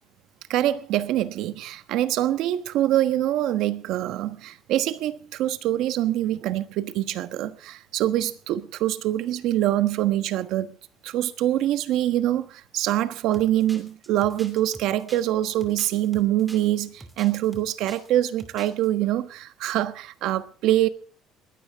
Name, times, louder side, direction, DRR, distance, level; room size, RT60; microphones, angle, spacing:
voice 1, 0.5-10.8 11.0-20.9, right 13 dB, 65° right, 1.2 m, -24 dB
sound 1, 13.3-18.1 18.4-18.9, right 2 dB, 10° right, 2.6 m, -45 dB
21.0 x 16.0 x 3.6 m
cardioid pair, 160°, 0 cm